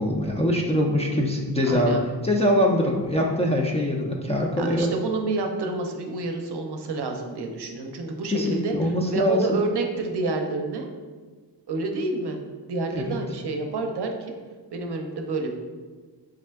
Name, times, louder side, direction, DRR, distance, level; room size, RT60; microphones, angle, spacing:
voice 1, 0.0-2.0 2.2-4.9 8.3-9.6 12.9-13.1, left 1 dB, 15° left, -3 dB, 0.3 m, -23 dB
voice 2, 1.7-2.0 4.6-10.9 11.7-12.4 12.7-14.4 14.7-15.5, right 3 dB, 70° right, 3 dB, 0.6 m, -29 dB
3.6 x 3.2 x 3.4 m, 1.4 s
wide cardioid pair, 140°, 42 cm